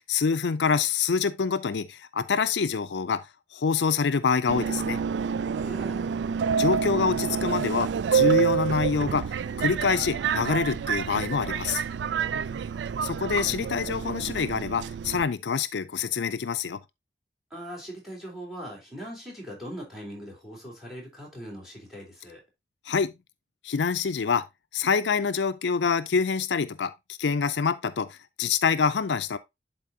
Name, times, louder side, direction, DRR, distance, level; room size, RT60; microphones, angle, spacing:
voice 1, 0.0-3.3 3.5-5.0 6.6-9.3 9.6-11.8 13.0-16.8 22.9-23.1 23.6-24.4 24.7-29.4, left 5 dB, 75° left, 0.5 m, -26 dB
Subway metro underground, 4.5-15.2, right 7 dB, 75° right, 0.3 m, -28 dB
voice 2, 5.5-6.2 17.5-22.4, equal, ahead, 3.6 m, -40 dB
11.0 x 4.2 x 2.7 m
head